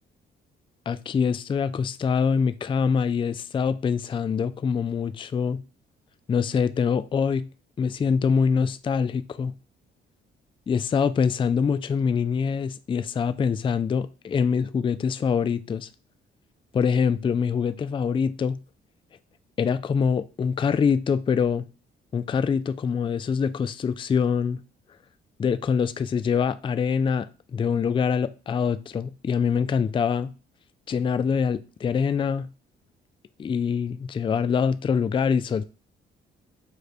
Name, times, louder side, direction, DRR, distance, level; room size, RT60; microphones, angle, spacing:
voice 1, 0.9-5.6 6.3-7.5 7.8-9.5 10.7-15.9 16.7-18.6 19.6-21.6 22.1-24.6 25.4-30.3 30.9-32.5 33.4-35.6, left 6 dB, 25° left, 0.3 m, -24 dB
5.3 x 2.2 x 4.1 m
cardioid pair, 90°, 20 cm